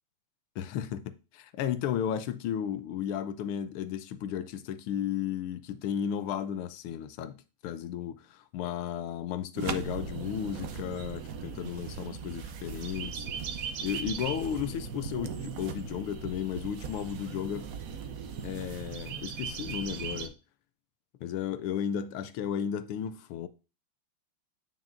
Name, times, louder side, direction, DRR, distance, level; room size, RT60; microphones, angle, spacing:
voice 1, 0.6-13.2 13.8-17.7 18.4-20.3 21.2-23.5, left 9 dB, 80° left, 1.6 m, -34 dB
sound 1, 9.6-20.3, right 6 dB, 65° right, 0.8 m, -38 dB
9.1 x 5.8 x 2.5 m
omnidirectional pair, 2.4 m